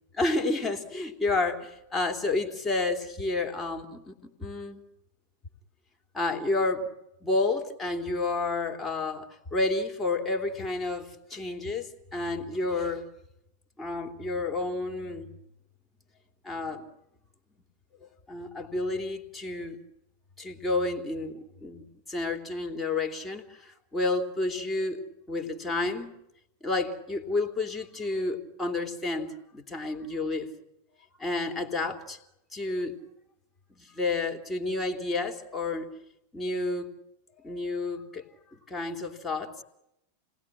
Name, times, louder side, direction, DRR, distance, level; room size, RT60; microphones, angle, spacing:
voice 1, 0.1-4.8 6.1-6.9 7.2-13.0 13.8-15.3 16.4-16.8 18.3-19.8 20.4-26.2 26.6-30.5 31.2-32.2 32.5-33.0 33.7-35.9 36.3-36.9 37.4-38.3 38.5-39.6, left 3 dB, 15° left, 3.1 m, -30 dB
29.5 x 19.5 x 9.9 m
figure-of-eight pair, 90°, 0 cm